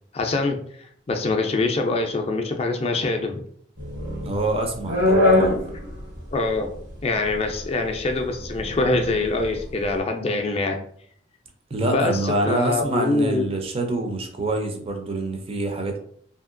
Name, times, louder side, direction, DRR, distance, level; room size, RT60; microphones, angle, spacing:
voice 1, 0.1-0.6 1.1-3.4 6.3-6.7 7.0-10.8 11.8-13.5, left 2 dB, 30° left, 4 dB, 0.4 m, -24 dB
sound 1, 3.8-9.9, left 2 dB, 90° right, 1.5 m, -24 dB
voice 2, 4.2-5.6 11.7-16.0, right 2 dB, 30° right, 3 dB, 0.5 m, -26 dB
2.8 x 2.7 x 2.5 m, 0.63 s
head